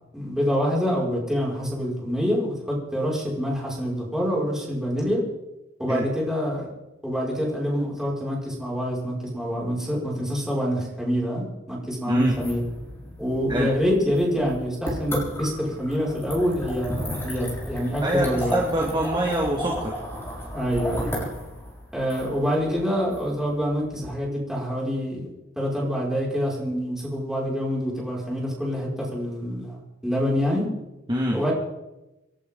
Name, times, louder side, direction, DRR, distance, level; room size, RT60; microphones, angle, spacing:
voice 1, 0.1-5.2 5.8-6.7 7.0-12.6 13.2-18.6 20.5-21.1 21.9-25.3 25.6-29.8 30.0-30.7 31.3-31.5, equal, 5° right, -5 dB, 6.0 m, -26 dB
sound 1, 12.2-24.1, equal, 15° left, 6.2 m, -34 dB
voice 2, 18.0-20.0 31.1-31.4, equal, 25° right, -2 dB, 2.1 m, -24 dB
29.0 x 11.5 x 3.9 m, 0.99 s
head